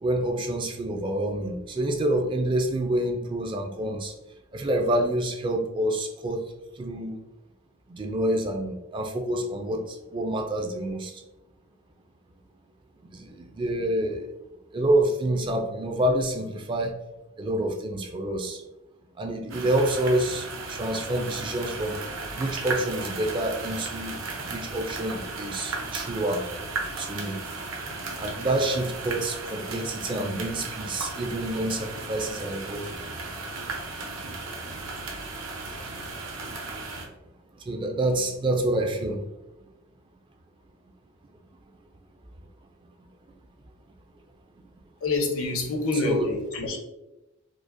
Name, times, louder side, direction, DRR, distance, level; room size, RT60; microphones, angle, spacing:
voice 1, 0.0-4.1 4.5-6.4 6.8-7.2 7.9-11.2 13.1-14.3 14.7-17.0 17.4-18.6 19.2-22.0 22.4-26.4 27.0-27.4 28.2-32.9 37.6-39.3 46.0-46.3, right 1 dB, 20° right, 3 dB, 0.3 m, -27 dB
sound 1, 19.5-37.0, right 3 dB, 65° right, 0.7 m, -35 dB
voice 2, 45.0-46.8, left 3 dB, 75° left, 2 dB, 0.7 m, -27 dB
4.9 x 2.0 x 2.5 m, 0.95 s
head